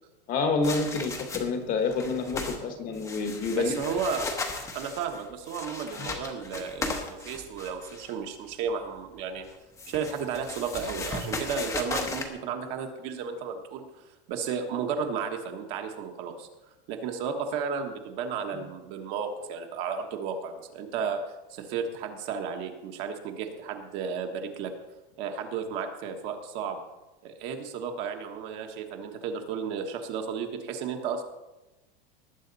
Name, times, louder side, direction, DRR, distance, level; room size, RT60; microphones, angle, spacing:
voice 1, 0.3-3.7 6.0-6.1, left 4 dB, 25° left, 6 dB, 1.3 m, -28 dB
sound 1, 0.6-1.6 1.9-2.6 2.9-8.1 9.4-12.3, left 3 dB, 10° left, 1.0 m, -36 dB
voice 2, 3.5-4.3 4.7-9.5 9.9-16.5 16.9-21.2 21.5-24.7 25.2-26.8 27.2-31.2, right 6 dB, 35° right, 4 dB, 1.3 m, -33 dB
19.0 x 8.0 x 4.1 m, 1.0 s
supercardioid pair, 170°, 31 cm